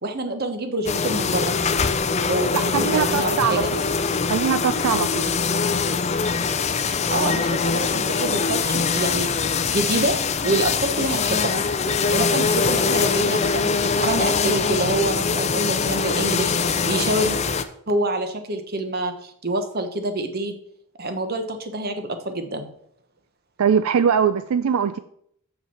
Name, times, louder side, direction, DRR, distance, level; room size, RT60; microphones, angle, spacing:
voice 1, 0.0-1.5 2.3-3.7 6.9-9.3 9.6-10.2 10.4-11.6 12.1-17.4 17.9-20.5 21.0-22.7, right 2 dB, 45° right, 7 dB, 1.1 m, -26 dB
sound 1, 0.9-17.6, left 5 dB, 30° left, 0.5 m, -23 dB
voice 2, 2.5-3.8 4.3-5.3 23.6-25.0, right 7 dB, 80° right, 12 dB, 0.4 m, -21 dB
7.2 x 5.7 x 5.7 m, 0.68 s
head